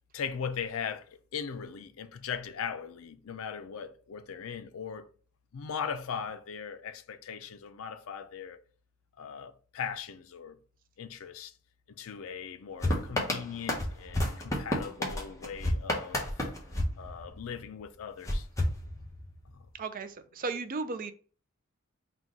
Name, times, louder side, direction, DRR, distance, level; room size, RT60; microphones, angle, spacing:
voice 1, 0.1-1.0 1.3-5.1 5.5-8.6 9.2-10.5 11.0-11.5 12.0-16.2 17.0-18.4, left 7 dB, 80° left, 0.4 m, -39 dB
sound 1, 12.8-17.7 18.2-19.5, left 1 dB, 15° left, 0.8 m, -32 dB
voice 2, 19.7-21.1, right 4 dB, 40° right, 0.4 m, -35 dB
3.9 x 2.2 x 4.6 m
head